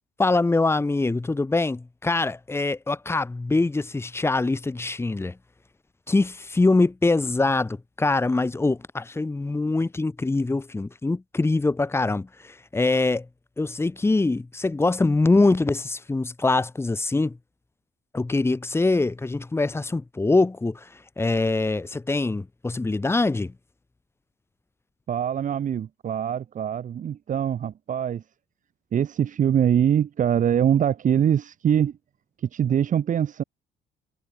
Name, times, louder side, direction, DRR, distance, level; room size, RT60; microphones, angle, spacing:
voice 1, 0.2-5.4 6.1-13.3 13.6-17.4 18.1-23.5, left 3 dB, 15° left, 2.7 m, -23 dB
voice 2, 25.1-28.2 28.9-32.0 32.5-33.4, right 9 dB, 50° right, 5.8 m, -23 dB
cardioid pair, 110°, 17 cm